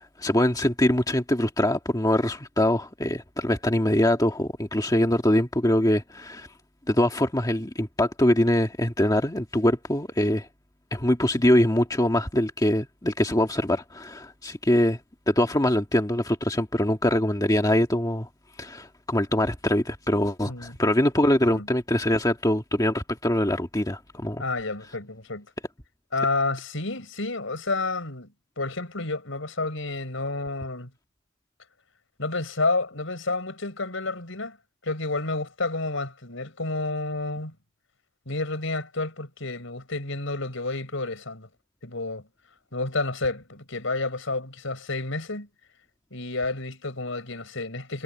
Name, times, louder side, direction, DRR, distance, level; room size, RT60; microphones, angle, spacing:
voice 1, 0.2-6.5 6.9-10.5 10.9-15.0 15.3-18.3 18.6-24.4, left 1 dB, 20° left, 1.8 m, -23 dB
voice 2, 20.4-20.8 21.4-21.7 24.4-25.5 26.1-30.9 32.2-34.6 34.8-37.6 38.3-41.5 41.8-42.2 42.7-45.5 46.1-48.0, left 3 dB, 75° left, 5.5 m, -30 dB
head